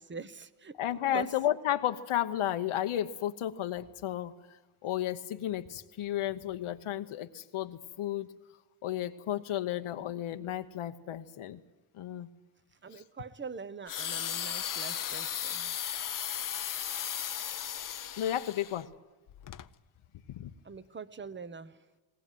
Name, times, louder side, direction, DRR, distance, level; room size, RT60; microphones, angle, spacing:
voice 1, 0.0-0.7 1.1-1.3 12.8-15.7 20.6-21.8, right 5 dB, 25° right, 14 dB, 0.9 m, -43 dB
voice 2, 0.8-4.3 4.8-8.3 8.8-11.6 11.9-12.3 12.9-13.0 18.2-18.9 20.3-20.5, left 12 dB, 80° left, 7 dB, 1.0 m, -33 dB
sound 1, 13.9-18.8 19.5-19.6, left 9 dB, 40° left, 0.7 m, -36 dB
20.0 x 19.0 x 9.2 m, 1.2 s
cardioid pair, 105°, 49 cm